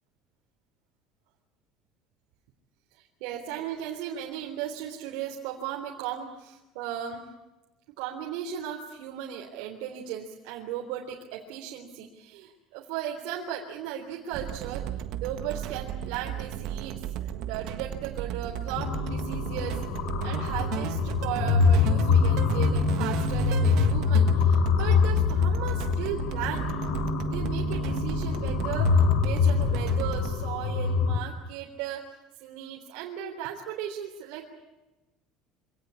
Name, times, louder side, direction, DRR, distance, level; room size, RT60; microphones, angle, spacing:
voice 1, 3.2-7.2 8.0-14.9 15.2-19.8 20.2-26.7 27.2-32.0 32.4-34.5, right 9 dB, 75° right, 0 dB, 3.5 m, -36 dB
sound 1, 14.3-30.4, right 11 dB, 55° right, 1.6 m, -35 dB
sound 2, 18.8-31.2, left 5 dB, 65° left, 3.6 m, -25 dB
26.0 x 18.0 x 10.0 m, 1.0 s
cardioid pair, 175°, 0 cm